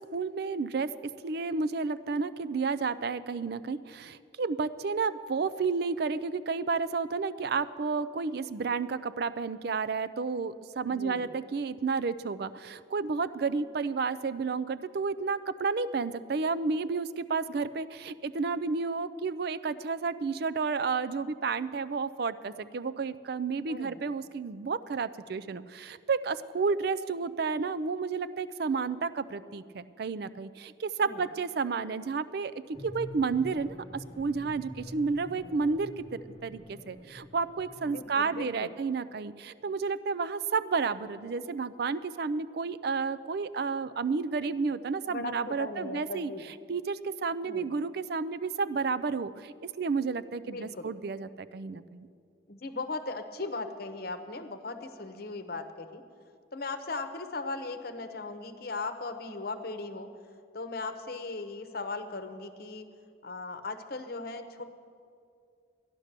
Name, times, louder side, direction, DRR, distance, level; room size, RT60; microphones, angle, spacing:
voice 1, 0.0-46.3 46.7-52.1, right 4 dB, 55° right, 14 dB, 0.4 m, -31 dB
voice 2, 10.8-11.3 23.7-24.0 31.0-31.2 37.9-38.7 45.1-46.4 47.4-47.7 50.4-50.9 52.5-56.0 56.5-60.1 60.5-62.8 63.2-64.6, left 3 dB, 50° left, 9 dB, 0.9 m, -38 dB
sound 1, 32.7-38.1, left 1 dB, 25° left, 0.8 m, -47 dB
13.5 x 10.5 x 6.6 m, 2.4 s
head